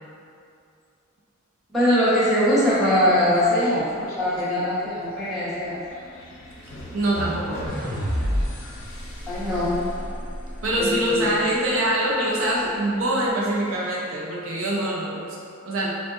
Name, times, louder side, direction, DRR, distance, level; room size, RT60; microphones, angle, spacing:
voice 1, 1.7-3.9 4.2-5.8 9.3-9.7 10.8-11.5, equal, ahead, -13 dB, 0.9 m, -21 dB
sound 1, 2.6-13.8, left 1 dB, 65° left, 0.5 m, -41 dB
voice 2, 6.9-7.6 10.6-15.9, right 1 dB, 70° right, -4 dB, 0.5 m, -24 dB
sound 2, 7.7-10.9, equal, 40° right, 1.1 m, -29 dB
3.8 x 2.6 x 2.4 m, 2.4 s
head